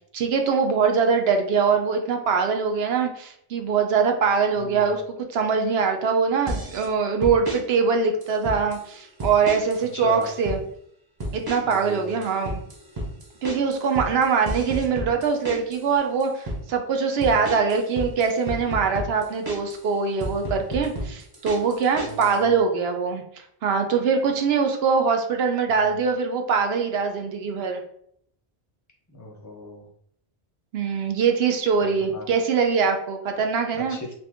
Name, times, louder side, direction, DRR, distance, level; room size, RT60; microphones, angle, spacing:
voice 1, 0.1-5.0 5.3-10.6 11.3-12.6 13.4-23.2 23.6-27.8 30.7-34.0, right 5 dB, 75° right, 4 dB, 0.8 m, -23 dB
voice 2, 4.6-5.0 9.9-10.3 11.6-12.2 17.2-17.5 22.0-22.5 29.2-29.9 32.0-32.3 33.7-34.1, left 3 dB, 20° left, -1 dB, 0.5 m, -36 dB
sound 1, 6.5-6.9 7.2-7.6 8.2-8.8 9.2-9.8 10.1-10.6 11.2-11.8 12.1-15.8 16.2-16.6 17.2-19.8 20.2-22.4, equal, 30° right, 0.4 m, -32 dB
2.7 x 2.5 x 3.4 m, 0.69 s
omnidirectional pair, 1.1 m